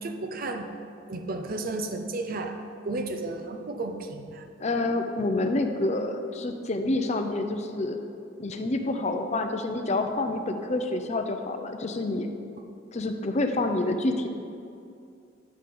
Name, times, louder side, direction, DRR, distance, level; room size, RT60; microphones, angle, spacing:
voice 1, 0.0-0.7 1.1-2.5 2.8-4.5, right 2 dB, 50° right, 5 dB, 0.7 m, -33 dB
voice 2, 4.6-8.0 8.4-12.3 12.9-14.3, left 2 dB, 35° left, 6 dB, 0.6 m, -28 dB
10.5 x 3.8 x 6.7 m, 2.5 s
head